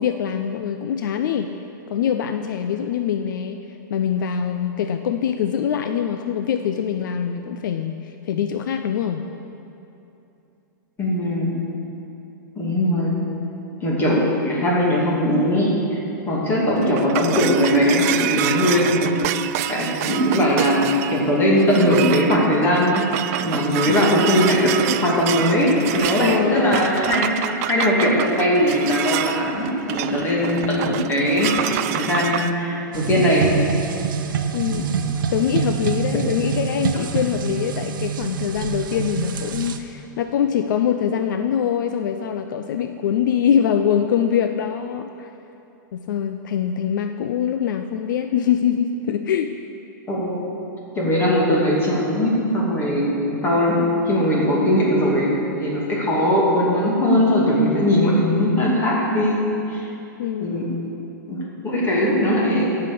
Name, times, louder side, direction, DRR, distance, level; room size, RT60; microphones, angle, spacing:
voice 1, 0.0-1.6 1.9-9.3 23.9-24.0 26.2-26.9 34.5-35.0 35.3-45.3 45.9-49.6 60.2-60.7, left 8 dB, 65° left, 7 dB, 0.5 m, -23 dB
voice 2, 11.0-11.5 12.6-13.1 13.8-16.0 16.3-19.2 19.7-31.5 31.8-33.5 34.7-34.9 50.1-50.4 50.9-53.8 54.1-59.8 60.4-60.7 61.3-62.7, equal, 20° left, -4 dB, 2.6 m, -20 dB
sound 1, 16.5-32.5, right 12 dB, 45° right, 0.4 m, -28 dB
sound 2, 32.9-39.8, right 7 dB, 75° right, 0.8 m, -26 dB
14.0 x 5.8 x 6.8 m, 2.9 s
hypercardioid pair, 145°, 11 cm